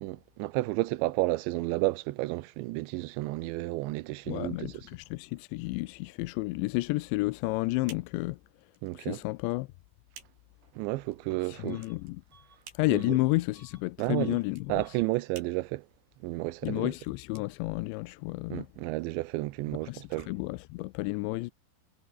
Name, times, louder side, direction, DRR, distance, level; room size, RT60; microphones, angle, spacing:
voice 1, 0.0-4.8 8.8-9.2 10.7-11.8 12.9-13.2 14.0-14.4 14.7-15.9 16.2-16.9 18.5-20.3, right 20 dB, 85° right, 3.0 m, -32 dB
voice 2, 4.3-8.4 8.9-9.7 11.4-12.2 12.7-14.8 16.6-18.7 19.9-21.5, left 21 dB, 85° left, 2.9 m, -31 dB
sound 1, 7.0-18.3, right 7 dB, 65° right, 6.3 m, -56 dB
Bus / Alarm, 11.7-12.0 12.3-13.9 14.1-14.5 14.8-15.1, right 4 dB, 25° right, 3.0 m, -61 dB
omnidirectional pair, 5.1 m